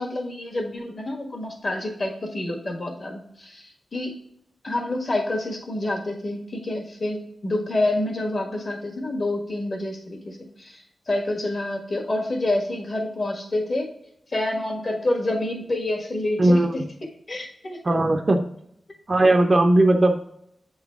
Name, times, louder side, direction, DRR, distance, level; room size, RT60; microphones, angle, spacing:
voice 1, 0.0-4.1 4.6-13.9 14.3-16.8 17.3-17.8, left 1 dB, 40° left, 1 dB, 1.5 m, -28 dB
voice 2, 16.4-16.8 17.8-18.5 19.1-20.2, right 1 dB, 35° right, 4 dB, 0.6 m, -18 dB
7.6 x 3.9 x 3.5 m, 0.72 s
wide cardioid pair, 150°, 0 cm